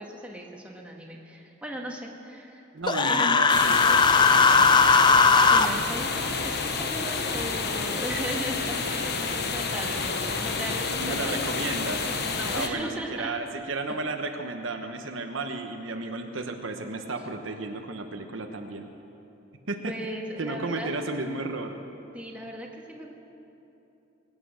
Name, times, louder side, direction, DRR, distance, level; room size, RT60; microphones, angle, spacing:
voice 1, 0.0-2.6 3.0-3.4 5.3-13.3 19.9-20.9 22.1-23.1, equal, 5° right, -1 dB, 1.6 m, -37 dB
voice 2, 2.7-4.8 10.9-12.1 12.5-18.9 19.7-19.9 20.4-21.8, right 3 dB, 70° right, 5 dB, 1.1 m, -33 dB
Human voice, 2.9-5.7, left 4 dB, 25° left, 0.4 m, -18 dB
sound 1, 3.5-12.7, left 4 dB, 55° left, 1.1 m, -29 dB
22.0 x 9.4 x 6.4 m, 3.0 s
head